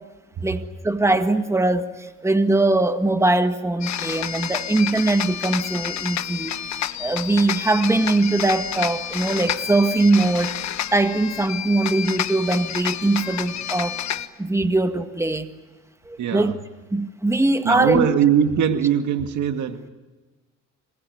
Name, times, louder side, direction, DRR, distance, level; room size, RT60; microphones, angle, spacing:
voice 1, 0.4-6.6 7.0-10.5 10.9-14.0 14.4-15.5 16.1-16.6 16.9-18.1, right 2 dB, 10° right, 1.8 m, -21 dB
sound 1, 3.8-14.3, left 10 dB, 65° left, 1.4 m, -29 dB
voice 2, 16.2-16.6 17.6-19.9, right 8 dB, 75° right, 2.1 m, -21 dB
27.0 x 20.5 x 9.5 m
cardioid pair, 90°, 30 cm